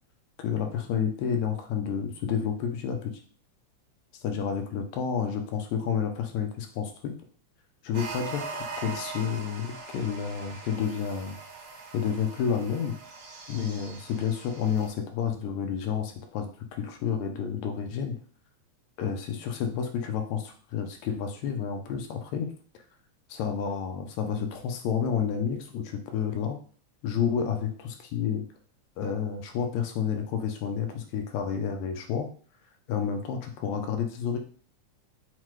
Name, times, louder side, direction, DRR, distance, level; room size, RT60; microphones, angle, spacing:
voice 1, 0.4-3.2 4.2-7.1 7.8-11.4 11.9-13.0 13.5-18.2 19.0-22.5 23.3-26.6 27.0-28.4 29.0-32.3 32.9-34.4, left 7 dB, 80° left, 5 dB, 1.8 m, -30 dB
sound 1, 7.9-14.9, right 4 dB, 70° right, 2.2 m, -41 dB
5.7 x 2.2 x 3.0 m, 0.43 s
omnidirectional pair, 3.4 m